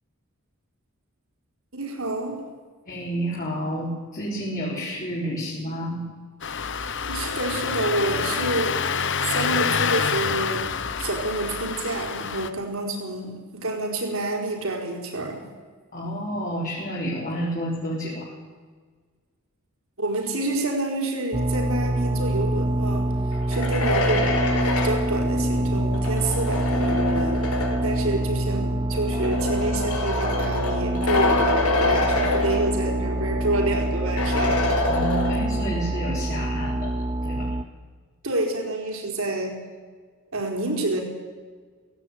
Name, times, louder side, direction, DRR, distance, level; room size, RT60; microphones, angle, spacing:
voice 1, 1.7-2.4 7.0-8.9 9.2-10.7 11.0-15.4 20.0-23.1 23.5-24.3 24.8-34.7 38.2-39.6 40.3-41.0, right 2 dB, 70° right, 2 dB, 4.6 m, -28 dB
voice 2, 2.9-6.0 15.9-18.3 34.9-37.6, equal, 40° left, -4 dB, 4.0 m, -30 dB
Engine starting, 6.4-12.5, left 6 dB, 55° left, 1.1 m, -27 dB
sound 1, 21.3-37.6, right 1 dB, 20° right, 0.6 m, -26 dB
sound 2, 23.3-28.0 28.9-33.1 33.4-33.5 34.2-35.7, left 2 dB, 90° left, 4.0 m, -26 dB
17.5 x 16.5 x 9.5 m, 1.5 s
head